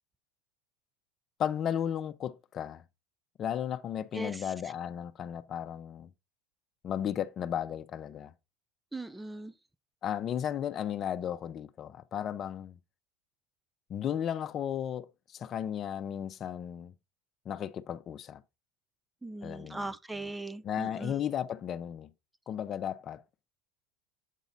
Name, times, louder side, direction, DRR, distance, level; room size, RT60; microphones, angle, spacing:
voice 1, 1.4-2.8 3.4-6.1 6.8-8.3 10.0-12.8 13.9-15.1 15.3-16.9 17.5-18.4 19.4-19.9 20.6-22.1 22.5-23.2, left 9 dB, 40° left, 0.6 m, -34 dB
voice 2, 4.1-4.5 8.9-9.5 19.2-21.2, right 2 dB, 10° right, 0.4 m, -39 dB
8.2 x 4.1 x 3.9 m
supercardioid pair, 100°, 0 cm